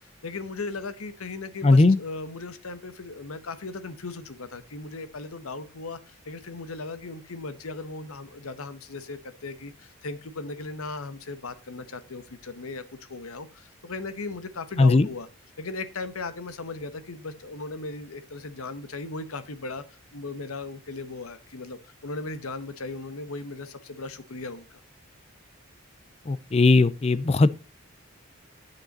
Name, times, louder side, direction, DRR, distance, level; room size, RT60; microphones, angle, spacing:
voice 1, 0.0-12.8 13.1-15.3 15.6-19.8 20.1-24.8, left 3 dB, 90° left, 1.0 m, -37 dB
voice 2, 1.6-2.0 14.8-15.1 26.3-27.5, left 3 dB, 30° left, 0.4 m, -18 dB
9.0 x 6.5 x 4.1 m
head